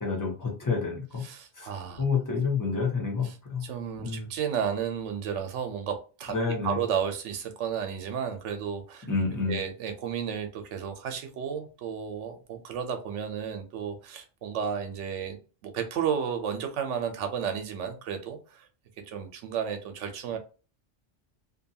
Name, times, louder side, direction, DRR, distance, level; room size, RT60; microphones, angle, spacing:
voice 1, 0.0-1.2 1.5-1.7 2.0-3.7 4.0-4.3 6.3-6.8 9.1-9.6, left 4 dB, 20° left, -1 dB, 0.8 m, -29 dB
voice 2, 1.2-2.0 3.2-3.4 3.6-6.4 6.6-9.1 9.5-15.4 15.6-18.7 19.1-20.4, right 7 dB, 85° right, 6 dB, 0.9 m, -32 dB
2.7 x 2.2 x 2.7 m, 0.34 s
omnidirectional pair, 1.2 m